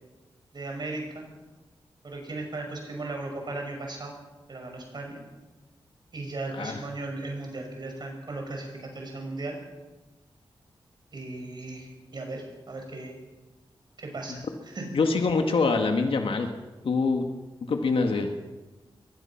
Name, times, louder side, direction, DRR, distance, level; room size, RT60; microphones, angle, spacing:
voice 1, 0.5-1.3 2.0-4.1 4.5-5.2 6.1-9.6 11.1-13.1 14.0-14.8, right 2 dB, 50° right, 2 dB, 5.9 m, -36 dB
voice 2, 14.9-16.5 16.8-17.2 17.6-18.3, left 4 dB, 80° left, 4 dB, 1.9 m, -25 dB
23.0 x 19.5 x 5.9 m, 1.2 s
wide cardioid pair, 115°, 9 cm